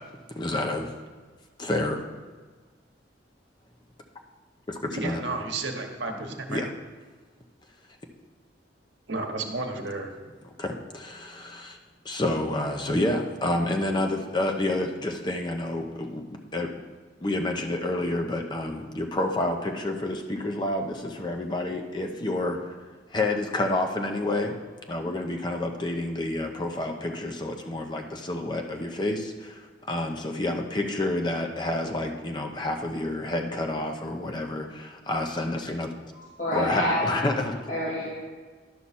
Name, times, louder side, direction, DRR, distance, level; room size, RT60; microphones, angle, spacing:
voice 1, 0.4-0.9 1.6-2.0 4.7-5.2 6.5-6.7 10.6-11.8 12.0-16.7 17.2-22.6 23.1-24.6 24.9-29.6 29.9-35.9 36.5-37.6, left 1 dB, 25° left, 2 dB, 0.8 m, -29 dB
voice 2, 4.9-6.6 9.1-10.3, right 3 dB, 75° right, 3 dB, 1.1 m, -32 dB
voice 3, 36.1-37.1 37.7-38.1, equal, 45° left, -10 dB, 2.7 m, -28 dB
11.0 x 5.9 x 4.2 m, 1.4 s
head